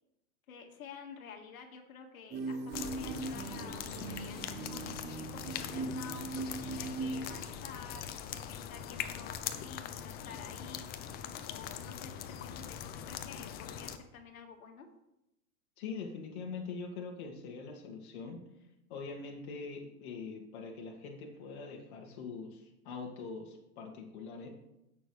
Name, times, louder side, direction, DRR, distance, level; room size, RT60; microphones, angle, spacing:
voice 1, 0.5-10.9 11.5-14.9, left 5 dB, 70° left, 4 dB, 2.0 m, -50 dB
sound 1, 2.3-7.4, right 3 dB, 25° right, 1.2 m, -39 dB
sound 2, 2.7-14.0, left 9 dB, 20° left, 0.6 m, -42 dB
voice 2, 15.8-18.4 18.9-24.5, left 4 dB, 50° left, 0 dB, 2.0 m, -43 dB
16.0 x 6.3 x 3.3 m, 0.88 s
hypercardioid pair, 130°, 43 cm